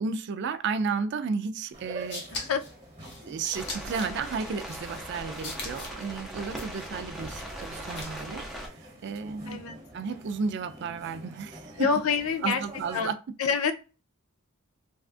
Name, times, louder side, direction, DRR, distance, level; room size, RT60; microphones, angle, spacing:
voice 1, 0.0-2.3 3.3-8.4 9.0-9.6 9.9-11.9 12.4-13.2, right 5 dB, 55° right, 0.3 m, -33 dB
sound 1, 1.7-13.0, right 1 dB, 25° right, 1.1 m, -46 dB
sound 2, 1.8-8.4, left 3 dB, 55° left, 0.9 m, -42 dB
sound 3, 3.5-8.7, right 1 dB, ahead, 0.6 m, -40 dB
voice 2, 9.5-9.8 11.8-12.6 12.9-13.1 13.4-13.7, left 6 dB, 75° left, 0.5 m, -26 dB
3.4 x 2.3 x 2.4 m
head